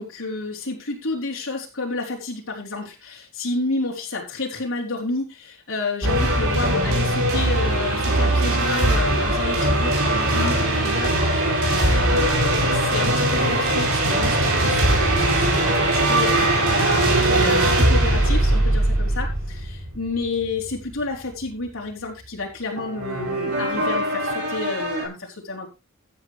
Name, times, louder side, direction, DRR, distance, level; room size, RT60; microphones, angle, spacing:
voice 1, 0.0-25.7, left 3 dB, 70° left, -1 dB, 4.0 m, -30 dB
sound 1, 6.0-21.0 22.8-25.1, right 1 dB, 75° right, 5.9 m, -21 dB
14.5 x 9.0 x 3.3 m, 0.28 s
head